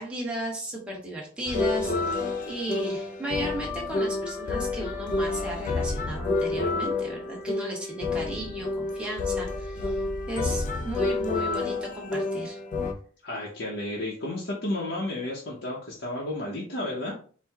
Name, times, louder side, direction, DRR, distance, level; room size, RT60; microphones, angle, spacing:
voice 1, 0.0-10.0 10.3-12.6, right 1 dB, 5° right, -3 dB, 1.1 m, -35 dB
sound 1, 1.5-12.9, left 3 dB, 40° left, 0.5 m, -29 dB
voice 2, 13.2-17.1, left 1 dB, 60° left, -4 dB, 0.9 m, -32 dB
4.5 x 2.3 x 3.5 m, 0.41 s
head